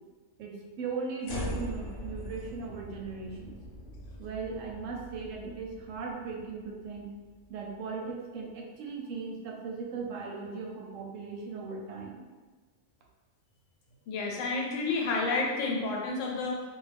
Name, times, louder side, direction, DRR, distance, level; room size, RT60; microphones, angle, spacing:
voice 1, 0.4-3.6 4.2-7.1 7.5-12.2, right 4 dB, 90° right, 0 dB, 1.0 m, -38 dB
sound 1, 1.2-7.5, equal, 55° left, 0.7 m, -42 dB
voice 2, 14.1-16.6, left 3 dB, 85° left, -1 dB, 0.9 m, -30 dB
2.4 x 2.2 x 3.3 m, 1.3 s
omnidirectional pair, 1.3 m